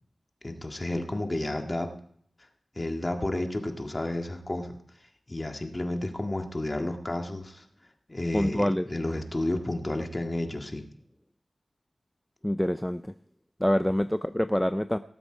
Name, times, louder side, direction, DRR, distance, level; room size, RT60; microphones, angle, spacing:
voice 1, 0.4-1.9 2.8-4.8 5.3-7.6 8.1-10.9, left 1 dB, 35° left, 4 dB, 1.8 m, -31 dB
voice 2, 8.3-8.8 12.4-13.1 13.6-15.0, equal, 10° left, 11 dB, 0.5 m, -26 dB
18.0 x 8.0 x 4.5 m, 0.65 s
cardioid pair, 40°, 0 cm